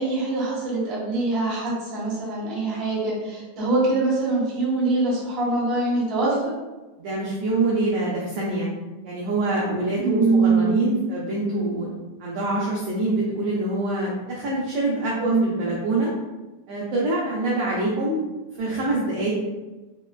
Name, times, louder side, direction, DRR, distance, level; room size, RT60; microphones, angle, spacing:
voice 1, 0.0-6.5 10.0-10.8 15.2-15.4, right 3 dB, 55° right, -9 dB, 0.6 m, -23 dB
voice 2, 7.0-8.7 9.0-11.9 12.2-16.1 16.7-18.3 18.5-19.3, right 2 dB, 85° right, -5 dB, 1.4 m, -25 dB
4.8 x 2.2 x 2.2 m, 1.2 s
omnidirectional pair, 3.4 m